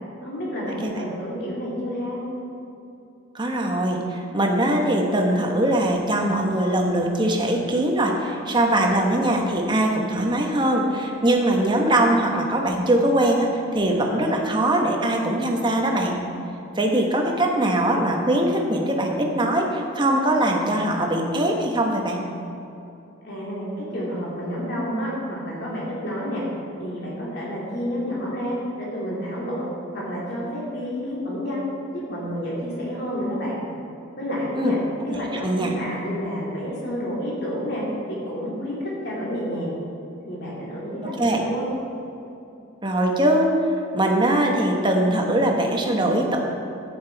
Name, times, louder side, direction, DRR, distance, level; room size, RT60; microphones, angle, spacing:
voice 1, 0.2-2.2 23.2-26.4 26.8-29.7 29.9-31.6 31.9-33.6 34.2-34.8 35.0-39.7 40.3-41.6, equal, 55° left, -6 dB, 2.6 m, -29 dB
voice 2, 3.3-16.2 16.8-22.2 34.6-34.8 35.1-35.7 41.2-41.4 42.8-43.6 43.9-46.4, right 1 dB, 20° right, 1 dB, 1.0 m, -21 dB
10.5 x 8.9 x 4.6 m, 2.7 s
head